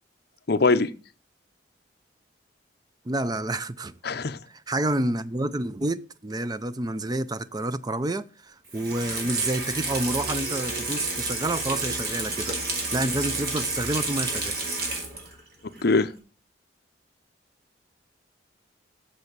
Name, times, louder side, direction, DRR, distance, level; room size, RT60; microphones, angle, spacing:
voice 1, 0.5-0.9 4.0-4.4 15.8-16.1, left 3 dB, 55° left, 0.7 m, -21 dB
voice 2, 3.1-3.9 4.7-12.6 12.9-14.6, right 2 dB, 20° right, 0.5 m, -29 dB
Water tap faucet / Sink (filling or washing), 8.7-15.4 15.8-15.9, right 2 dB, 50° right, 3.0 m, -30 dB
7.2 x 7.0 x 8.0 m
head